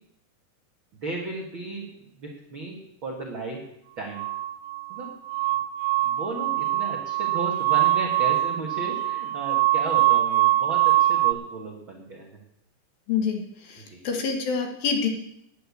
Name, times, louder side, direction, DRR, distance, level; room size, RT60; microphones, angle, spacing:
voice 1, 1.0-1.9 2.2-3.7 4.0-4.3 4.9-5.1 6.0-12.4 13.8-14.0, right 2 dB, 55° right, -1 dB, 1.4 m, -35 dB
sound 1, 4.2-11.3, right 15 dB, 85° right, 3.1 m, -23 dB
voice 2, 13.1-15.1, left 6 dB, 65° left, 3 dB, 3.1 m, -27 dB
10.5 x 9.9 x 8.3 m, 0.79 s
omnidirectional pair, 4.9 m